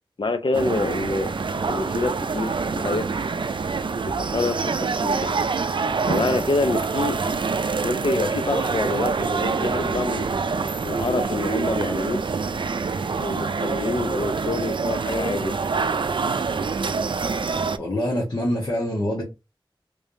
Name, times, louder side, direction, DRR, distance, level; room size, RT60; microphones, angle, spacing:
voice 1, 0.2-1.3 1.7-3.2 4.0-5.3 6.1-7.2 7.8-10.3 10.8-12.2 13.2-15.5, left 3 dB, 65° left, 0.7 m, -26 dB
sound 1, 0.5-17.8, right 4 dB, 65° right, 0.4 m, -26 dB
voice 2, 17.8-19.2, equal, 45° left, 1.5 m, -25 dB
3.4 x 3.4 x 2.7 m
wide cardioid pair, 50°, 9 cm